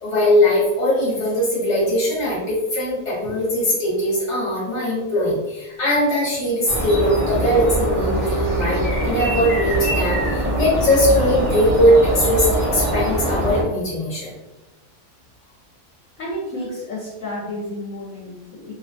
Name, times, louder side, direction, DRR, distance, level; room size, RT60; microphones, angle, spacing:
voice 1, 0.0-14.3, equal, 35° left, -7 dB, 0.8 m, -20 dB
sound 1, 6.7-13.6, right 1 dB, 70° right, 0.3 m, -22 dB
voice 2, 16.2-18.7, left 1 dB, 65° left, -5 dB, 0.9 m, -31 dB
2.6 x 2.2 x 2.5 m, 1.0 s
omnidirectional pair, 1.6 m